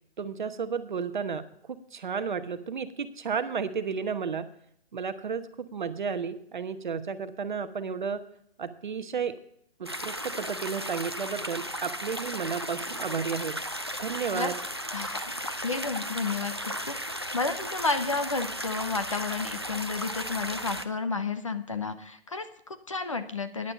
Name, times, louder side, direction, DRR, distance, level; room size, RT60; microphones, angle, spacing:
voice 1, 0.2-4.5 4.9-5.4 5.7-8.2 8.6-9.3 9.8-13.6 14.0-14.5, right 6 dB, 50° right, 10 dB, 1.0 m, -32 dB
sound 1, 9.9-20.9, equal, 25° right, 0.4 m, -35 dB
voice 2, 15.6-16.5 16.9-23.7, left 4 dB, 30° left, 9 dB, 0.6 m, -31 dB
10.5 x 9.9 x 5.8 m, 0.69 s
hypercardioid pair, 175°, 31 cm